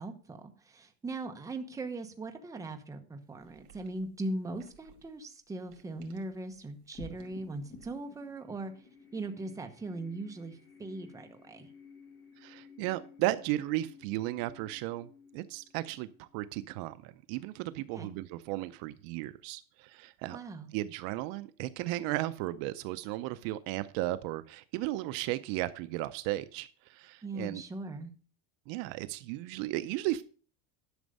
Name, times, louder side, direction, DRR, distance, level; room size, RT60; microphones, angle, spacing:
voice 1, 0.0-8.9 9.1-11.7 17.9-18.1 20.3-20.7 27.2-28.1, right 2 dB, 10° right, 5 dB, 0.9 m, -40 dB
sound 1, 3.4-8.1, right 7 dB, 75° right, 2.5 m, -61 dB
sound 2, 7.0-17.6, left 4 dB, 30° left, 1.5 m, -54 dB
voice 2, 12.4-20.4 20.7-27.6 28.7-30.2, right 16 dB, 60° right, 14 dB, 0.6 m, -35 dB
11.5 x 6.2 x 5.3 m, 0.39 s
cardioid pair, 165°, 39 cm